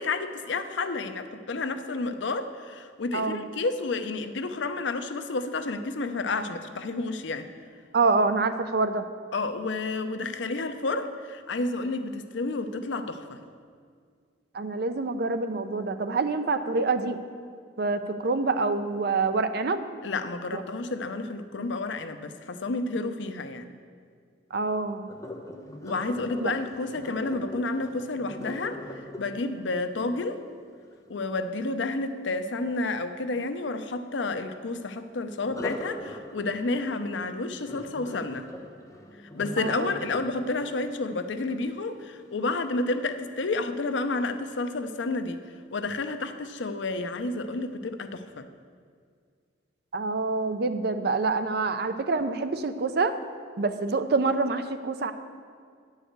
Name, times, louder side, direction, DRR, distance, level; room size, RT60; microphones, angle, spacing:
voice 1, 0.0-7.5 9.3-13.4 20.0-23.7 25.8-30.4 31.1-38.5 39.3-45.4 45.7-48.5, left 3 dB, 80° left, 9 dB, 0.6 m, -30 dB
voice 2, 3.1-3.5 7.9-9.0 14.5-17.2 17.8-19.9 20.5-20.6 24.5-25.1 26.4-26.5 39.6-40.0 49.9-53.2 53.6-55.1, right 3 dB, 60° right, 10 dB, 0.5 m, -26 dB
Sink (filling or washing), 25.1-31.0 35.4-42.5 43.0-43.3 43.8-43.9, left 1 dB, 20° left, 0.9 m, -41 dB
10.0 x 4.8 x 8.0 m, 2.1 s
head